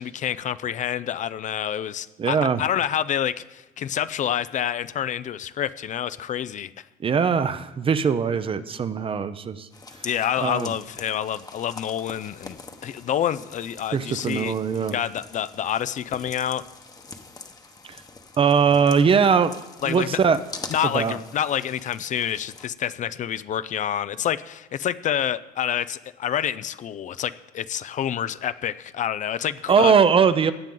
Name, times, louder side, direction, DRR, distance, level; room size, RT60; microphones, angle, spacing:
voice 1, 0.0-6.7 10.0-12.6 12.8-14.5 14.9-16.6 19.8-20.2 20.7-29.9, left 10 dB, 45° left, 15 dB, 0.4 m, -28 dB
voice 2, 2.2-2.6 7.0-9.7 10.4-10.7 13.9-15.0 17.9-18.0 18.4-19.5 19.8-20.4 20.9-21.2 29.7-30.5, right 6 dB, 30° right, 12 dB, 0.6 m, -20 dB
sound 1, 9.7-22.7, left 3 dB, 20° left, 1.0 m, -44 dB
16.5 x 9.0 x 3.8 m, 1.0 s
cardioid pair, 110°, 17 cm